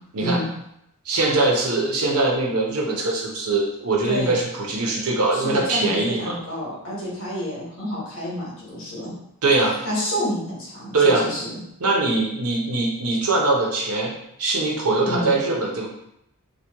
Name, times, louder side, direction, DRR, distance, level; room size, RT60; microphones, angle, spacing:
voice 1, 1.0-6.4 9.4-9.8 10.9-11.3 11.8-14.1 14.4-15.9, right 2 dB, 85° right, -1 dB, 0.8 m, -22 dB
voice 2, 5.3-9.1 9.8-11.6 15.0-15.3, equal, 65° left, -5 dB, 1.3 m, -29 dB
3.0 x 2.3 x 3.4 m, 0.78 s
head